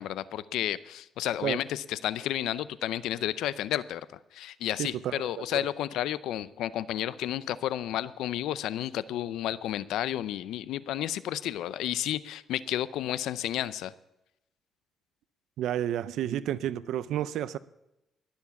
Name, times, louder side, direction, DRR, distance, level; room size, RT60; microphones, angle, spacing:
voice 1, 0.0-4.1 4.3-13.9, left 12 dB, 85° left, 17 dB, 0.5 m, -32 dB
voice 2, 4.8-5.2 15.6-17.6, right 11 dB, 80° right, 16 dB, 0.4 m, -30 dB
20.0 x 7.2 x 7.0 m, 0.91 s
cardioid pair, 90°, 0 cm